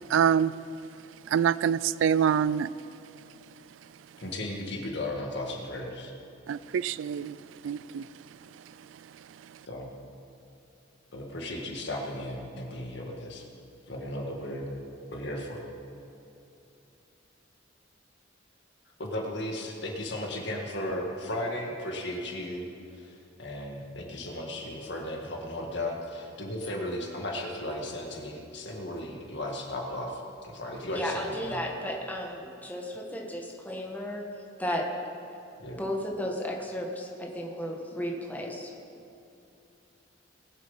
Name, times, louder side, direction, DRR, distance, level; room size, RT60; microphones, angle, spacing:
voice 1, 0.1-0.6 1.3-2.7 6.5-7.4 7.6-8.1 8.5-8.7 9.4-9.6, right 8 dB, 80° right, 0.3 m, -26 dB
voice 2, 4.2-6.1 9.7-9.9 11.1-13.5 13.9-14.7 15.1-15.6 19.0-22.7 22.9-31.7 35.6-35.8, left 1 dB, 65° left, 1.9 m, -35 dB
voice 3, 30.9-34.3 34.6-34.9 35.8-38.7, equal, 10° left, 1.4 m, -34 dB
20.5 x 7.5 x 5.6 m
head